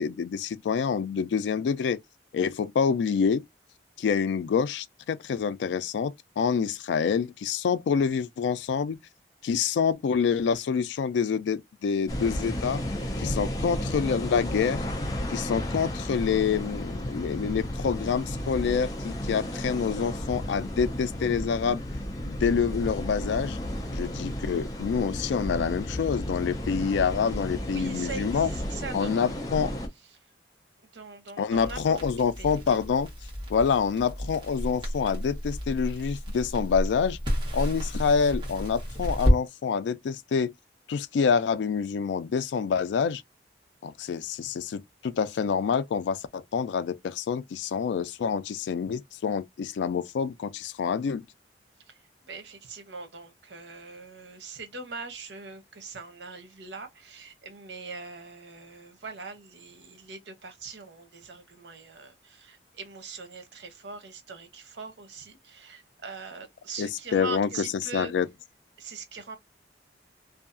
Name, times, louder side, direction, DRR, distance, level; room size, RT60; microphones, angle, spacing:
voice 1, 0.0-2.0 2.3-3.4 4.0-9.0 9.4-12.8 13.2-14.9 15.3-21.8 22.3-23.6 23.9-28.5 28.9-29.7 31.4-33.1 33.5-37.2 37.5-40.5 40.9-43.2 43.8-51.2 66.8-67.5 67.9-68.3, left 6 dB, 90° left, 0.3 m, -27 dB
sound 1, 12.1-29.9, left 1 dB, 20° left, 0.6 m, -33 dB
voice 2, 27.6-29.5 30.9-32.1 32.4-32.8 51.9-52.0 52.2-68.1 68.8-69.4, right 4 dB, 90° right, 0.7 m, -42 dB
Crackle, 31.5-39.4, equal, 25° right, 1.2 m, -30 dB
2.7 x 2.3 x 2.4 m
head